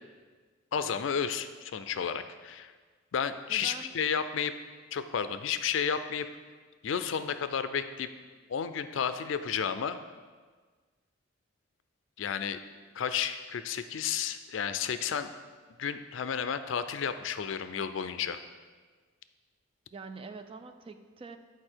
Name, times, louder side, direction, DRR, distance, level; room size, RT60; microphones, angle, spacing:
voice 1, 0.7-2.7 3.1-4.5 4.9-6.3 6.8-8.1 8.5-10.0 12.2-12.6 13.0-15.3 15.8-18.4, left 7 dB, 70° left, 11 dB, 0.4 m, -32 dB
voice 2, 3.5-3.9 19.9-21.4, right 4 dB, 30° right, 8 dB, 0.3 m, -45 dB
8.6 x 4.6 x 4.5 m, 1.4 s
head